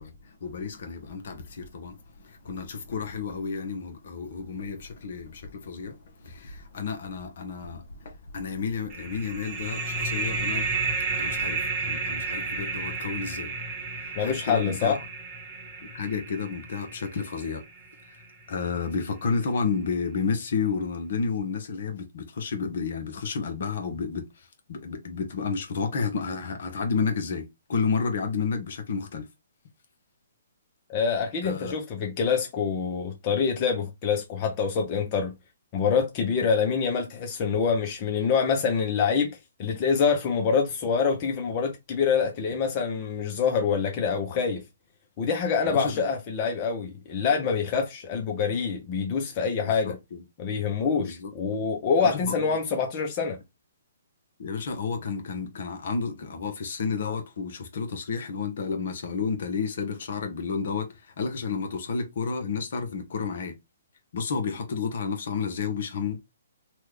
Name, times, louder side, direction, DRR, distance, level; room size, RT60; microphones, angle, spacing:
voice 1, 0.0-10.9 11.2-13.6 13.9-15.0 15.8-17.6 18.1-29.3 31.4-31.8 45.6-46.0 49.6-50.2 51.0-51.3 52.0-52.6 54.4-60.9 61.2-63.5 64.1-66.2, left 5 dB, 60° left, 0.9 m, -31 dB
sound 1, 8.9-18.2, right 3 dB, 20° right, 1.0 m, -32 dB
voice 2, 14.2-15.0 30.9-35.3 35.7-44.6 45.2-50.0 50.4-53.4, left 6 dB, 35° left, 0.6 m, -26 dB
2.9 x 2.3 x 3.3 m
hypercardioid pair, 135°, 0 cm